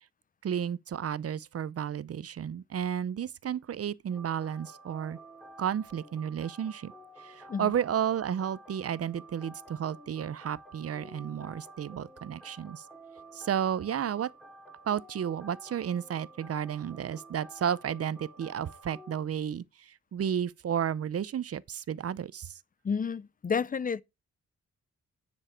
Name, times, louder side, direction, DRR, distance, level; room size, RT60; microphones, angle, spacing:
voice 1, 0.4-5.2 5.6-6.9 7.2-12.8 13.3-14.3 14.9-22.6, right 9 dB, 55° right, 0.7 m, -32 dB
sound 1, 4.1-19.2, right 2 dB, ahead, 2.6 m, -51 dB
voice 2, 22.8-24.0, left 6 dB, 30° left, 0.6 m, -30 dB
10.0 x 7.4 x 4.4 m
wide cardioid pair, 120°, 29 cm